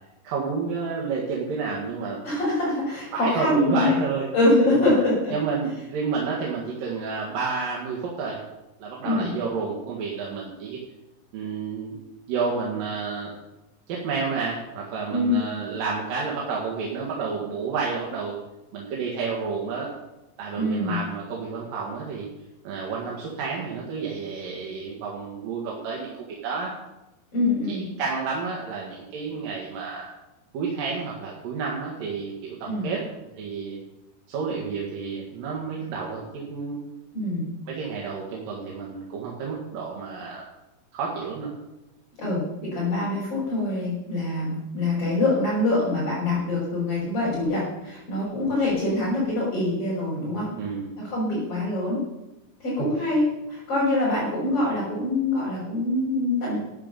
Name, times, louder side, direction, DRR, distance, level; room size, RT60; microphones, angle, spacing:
voice 1, 0.2-2.2 3.1-4.3 4.7-5.0 5.3-8.4 8.8-10.8 11.3-12.0 12.3-13.3 13.9-18.4 18.7-19.9 20.4-22.3 22.6-26.7 27.7-30.1 30.5-33.0 33.4-33.8 34.3-36.8 37.7-40.5 40.9-41.5 50.2-50.9 52.8-53.2, right 5 dB, 75° right, -3 dB, 3.5 m, -30 dB
voice 2, 2.2-3.9 4.3-5.3 9.0-9.3 15.1-15.5 20.6-21.0 27.3-27.9 32.7-32.9 37.1-37.5 42.2-50.5 51.0-52.0 52.6-56.6, left 2 dB, 40° left, -7 dB, 5.7 m, -24 dB
13.0 x 9.0 x 6.9 m, 0.97 s
omnidirectional pair, 4.0 m